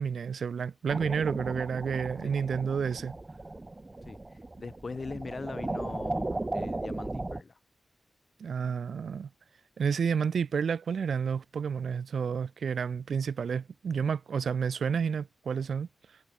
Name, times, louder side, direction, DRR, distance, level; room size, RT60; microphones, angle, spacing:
voice 1, 0.0-3.2 8.4-9.3 9.8-15.9, right 6 dB, 80° right, 0.8 m, -30 dB
sound 1, 0.9-7.4, right 2 dB, 25° right, 0.6 m, -36 dB
voice 2, 4.0-7.6, left 4 dB, 45° left, 3.5 m, -41 dB
wide cardioid pair, 100°, 0 cm